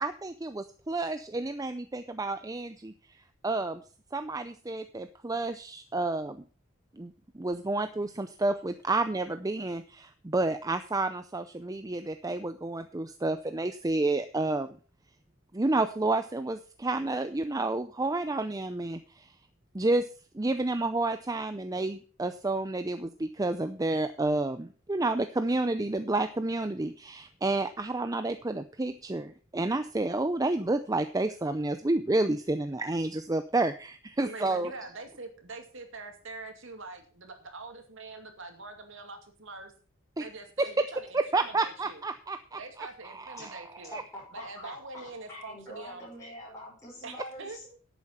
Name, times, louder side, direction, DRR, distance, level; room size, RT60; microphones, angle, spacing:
voice 1, 0.0-3.8 4.1-6.4 6.9-14.7 15.5-19.3 19.7-20.1 20.3-34.7 40.2-40.3 40.6-40.8 41.1-43.6 43.9-44.0, right 2 dB, 15° right, 9 dB, 0.5 m, -30 dB
voice 2, 34.2-39.7 40.2-42.0 42.6-43.9 44.3-46.1 47.0-47.6, right 3 dB, 65° right, 5 dB, 2.5 m, -44 dB
voice 3, 43.9-47.7, left 1 dB, 15° left, -6 dB, 6.1 m, -45 dB
11.0 x 8.5 x 5.6 m, 0.38 s
head